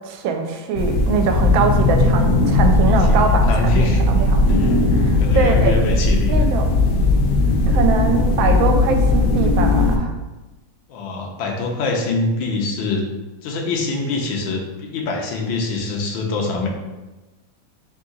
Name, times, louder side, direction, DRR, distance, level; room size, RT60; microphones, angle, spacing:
voice 1, 0.1-4.4 4.9-5.8 6.3-6.7 7.7-10.1, right 5 dB, 85° right, 5 dB, 1.3 m, -22 dB
sound 1, 0.8-10.0, left 2 dB, 70° left, 1.1 m, -17 dB
voice 2, 2.8-4.0 4.5-4.8 5.2-6.5 10.9-13.0 13.4-16.7, left 3 dB, 90° left, 1 dB, 1.5 m, -24 dB
3.9 x 2.8 x 3.8 m, 1.1 s
omnidirectional pair, 2.1 m